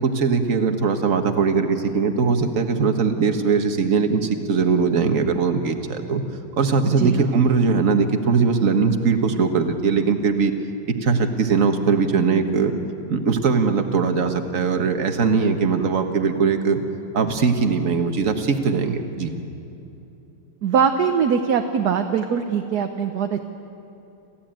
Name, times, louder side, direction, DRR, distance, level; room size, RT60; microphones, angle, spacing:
voice 1, 0.0-6.2 6.6-10.5 10.9-12.7 13.1-16.8 17.1-19.3, right 5 dB, 45° right, 6 dB, 1.7 m, -20 dB
voice 2, 20.6-23.4, right 7 dB, 65° right, 6 dB, 1.3 m, -21 dB
28.0 x 15.0 x 9.0 m, 2.9 s
omnidirectional pair, 2.0 m